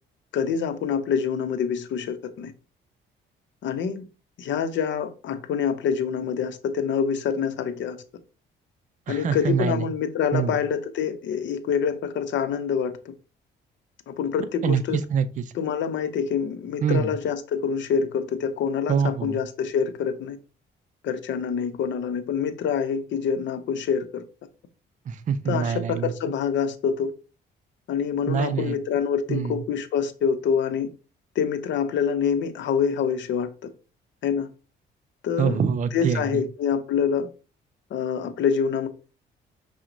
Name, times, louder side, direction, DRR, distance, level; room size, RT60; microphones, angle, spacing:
voice 1, 0.3-2.5 3.6-4.0 4.4-8.0 9.1-13.1 14.1-15.0 15.5-20.4 21.0-24.2 25.5-27.1 27.9-30.9 31.4-33.5 34.2-34.5 35.2-35.6 35.9-37.3 37.9-38.9, left 7 dB, 70° left, 0.6 m, -26 dB
voice 2, 9.1-9.8 10.3-10.5 14.6-15.4 16.8-17.1 18.9-19.4 25.1-26.1 28.3-28.8 29.3-29.6 35.4-36.4, right 7 dB, 40° right, 0.4 m, -25 dB
5.7 x 2.1 x 2.6 m
cardioid pair, 90°, 20 cm